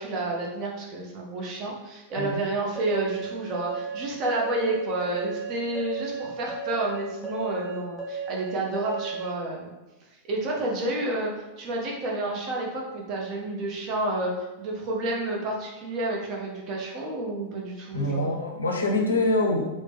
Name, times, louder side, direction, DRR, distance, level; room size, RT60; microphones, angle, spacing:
voice 1, 0.0-9.7 10.3-18.4, right 2 dB, 35° right, -2 dB, 0.7 m, -30 dB
sound 1, 2.7-9.3, right 5 dB, 5° left, 0.9 m, -34 dB
voice 2, 17.9-19.6, left 2 dB, 70° left, 1 dB, 0.5 m, -24 dB
3.0 x 2.1 x 3.3 m, 1.1 s
figure-of-eight pair, 90°, 0 cm